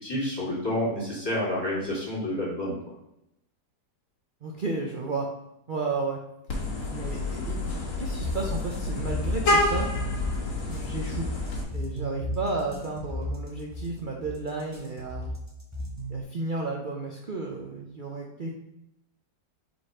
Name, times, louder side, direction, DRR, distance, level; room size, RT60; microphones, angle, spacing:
voice 1, 0.0-2.8, left 1 dB, 15° left, -7 dB, 2.4 m, -29 dB
voice 2, 4.4-5.3 5.7-6.2 6.9-7.6 8.0-9.9 10.7-11.3 11.7-15.3 16.1-18.5, right 3 dB, 80° right, -1 dB, 0.4 m, -32 dB
Vehicle horn car horn honking, 6.5-11.6, left 2 dB, 85° left, 2.2 m, -28 dB
sound 1, 8.2-16.2, equal, 10° right, 0.9 m, -34 dB
5.0 x 4.1 x 4.8 m, 0.83 s
omnidirectional pair, 1.9 m